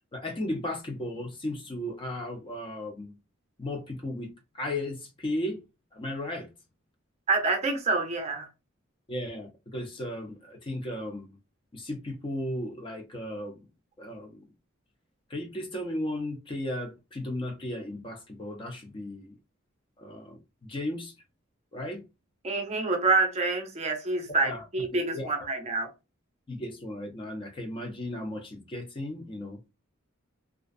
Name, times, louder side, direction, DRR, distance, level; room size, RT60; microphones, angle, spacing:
voice 1, 0.1-3.1 3.6-5.6 5.9-6.5 9.1-11.4 11.7-13.6 14.0-14.5 15.3-19.4 20.0-21.1 21.7-22.0 24.4-24.6 24.9-25.5 26.5-29.6, left 1 dB, 25° left, 0.4 m, -35 dB
voice 2, 7.3-8.5 22.4-25.9, right 3 dB, 30° right, 0.5 m, -27 dB
2.3 x 2.2 x 2.5 m
head